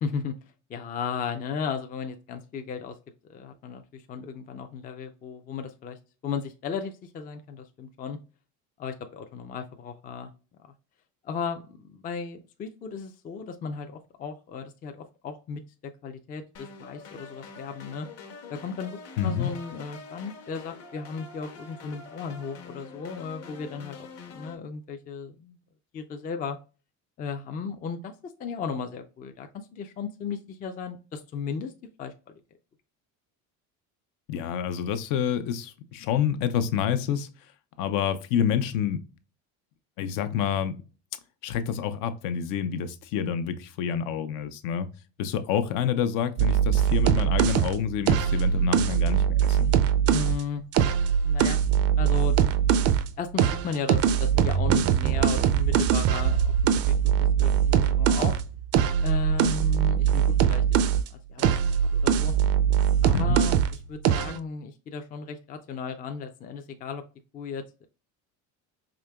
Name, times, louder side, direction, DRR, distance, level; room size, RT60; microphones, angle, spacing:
voice 1, 0.0-0.3 0.7-3.0 3.3-6.0 6.2-8.2 8.8-10.3 11.2-15.6 16.0-18.1 18.5-25.6 25.9-26.6 27.2-28.1 28.4-31.7 32.0-32.3 50.1-50.6 51.2-51.6 52.0-52.4 53.2-56.9 57.2-58.4 59.0-60.6 61.3-62.3 63.0-67.0 67.3-67.9, left 5 dB, 25° left, 0.4 m, -35 dB
sound 1, 16.5-24.5, left 4 dB, 50° left, 0.9 m, -45 dB
voice 2, 19.2-19.5 34.3-37.3 37.8-39.0 40.0-40.8 41.4-44.9 45.2-49.7 63.1-63.4, left 8 dB, 75° left, 0.7 m, -28 dB
sound 2, 46.4-50.4 50.7-53.1 53.4-61.1 61.4-63.8 64.0-64.4, right 8 dB, 45° right, 0.4 m, -22 dB
4.9 x 2.9 x 2.2 m
cardioid pair, 135°, 33 cm